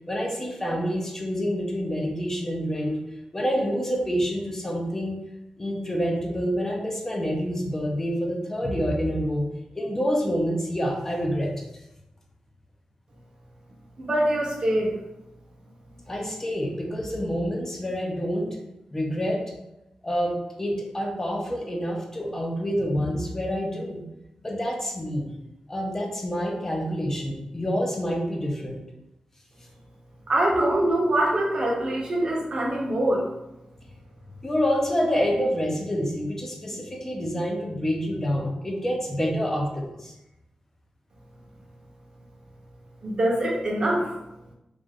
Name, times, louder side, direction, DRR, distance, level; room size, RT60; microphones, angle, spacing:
voice 1, 0.1-3.0 3.3-5.2 5.6-9.5 9.7-11.5 16.1-18.6 18.9-19.6 20.0-24.0 24.4-25.3 25.7-28.8 34.4-40.1, equal, 20° left, 0 dB, 0.7 m, -27 dB
voice 2, 14.0-14.9 30.3-33.2 43.0-44.1, right 1 dB, 40° right, -2 dB, 0.8 m, -24 dB
3.3 x 2.5 x 3.6 m, 0.90 s
wide cardioid pair, 150°, 2 cm